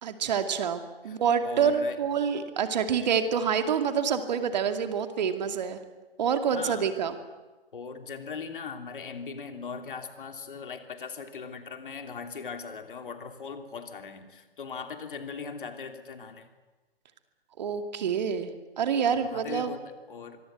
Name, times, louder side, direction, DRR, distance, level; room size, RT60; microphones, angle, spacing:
voice 1, 0.0-5.8 6.2-7.2 17.6-18.5 18.8-19.7, right 7 dB, 45° right, 8 dB, 2.3 m, -27 dB
voice 2, 1.0-2.0 6.5-6.9 7.7-16.5 19.1-20.4, left 5 dB, 55° left, 6 dB, 3.0 m, -39 dB
25.0 x 22.5 x 8.0 m, 1.2 s
figure-of-eight pair, 125°, 30 cm